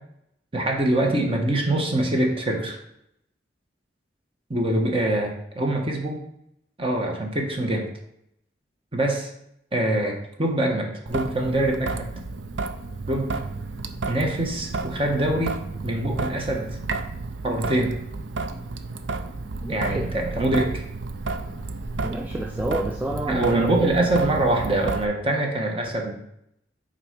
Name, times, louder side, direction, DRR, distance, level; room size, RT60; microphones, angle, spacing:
voice 1, 0.5-2.8 4.5-6.2 6.8-7.9 8.9-9.3 9.7-12.1 13.1-13.4 14.1-16.8 17.4-18.0 19.7-20.8 23.3-26.2, right 1 dB, 30° right, 1 dB, 1.2 m, -24 dB
Traffic noise roadway noise / Drip / Trickle dribble, 11.1-25.1, right 3 dB, 85° right, 0.5 m, -32 dB
voice 2, 19.6-20.1 22.0-23.8, right 1 dB, 10° right, 0 dB, 0.4 m, -30 dB
5.9 x 4.2 x 5.1 m, 0.77 s
head